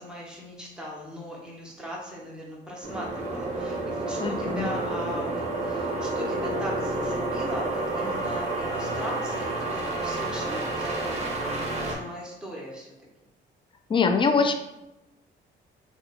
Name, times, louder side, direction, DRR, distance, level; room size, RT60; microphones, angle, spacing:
voice 1, 0.0-11.3 11.6-12.9 14.3-14.4, equal, 5° right, -4 dB, 1.0 m, -39 dB
sound 1, 2.8-12.0, right 2 dB, 35° right, 0.9 m, -30 dB
voice 2, 4.2-4.7 13.9-14.5, left 5 dB, 25° left, 6 dB, 0.4 m, -23 dB
2.6 x 2.3 x 4.0 m, 0.95 s
cardioid pair, 90°, 20 cm